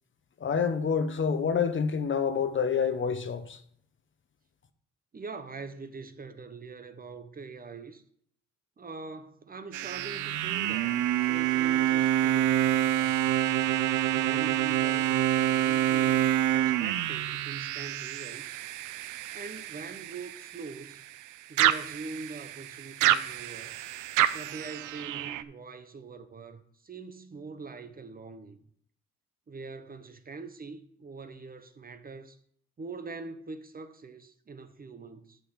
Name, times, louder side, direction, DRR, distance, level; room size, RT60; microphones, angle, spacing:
voice 1, 0.4-3.6, left 6 dB, 40° left, 1.0 m, -27 dB
voice 2, 5.1-8.0 8.8-13.4 14.2-18.6 19.3-21.0 21.5-23.8 24.3-28.6 29.5-32.4 32.8-35.4, right 4 dB, 30° right, 0.8 m, -43 dB
sound 1, 9.7-21.2 21.6-25.4, right 12 dB, 80° right, 0.6 m, -27 dB
11.5 x 3.9 x 6.2 m
cardioid pair, 90°, 30 cm